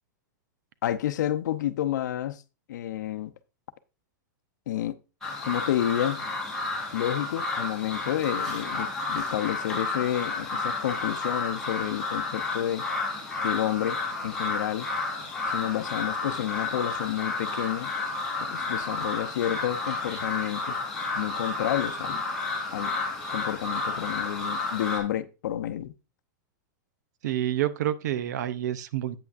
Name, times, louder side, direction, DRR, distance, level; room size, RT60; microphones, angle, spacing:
voice 1, 0.8-2.4 2.7-3.3 4.7-4.9 5.4-6.2 6.9-12.9 13.4-14.9 15.5-17.9 18.4-20.8 21.1-22.2 22.7-22.9 23.3-25.9, left 12 dB, 75° left, 0.7 m, -30 dB
sound 1, 5.2-25.0, left 3 dB, 5° left, 2.9 m, -31 dB
voice 2, 27.2-29.2, right 12 dB, 70° right, 0.6 m, -28 dB
8.7 x 8.3 x 2.5 m
supercardioid pair, 155°, 10 cm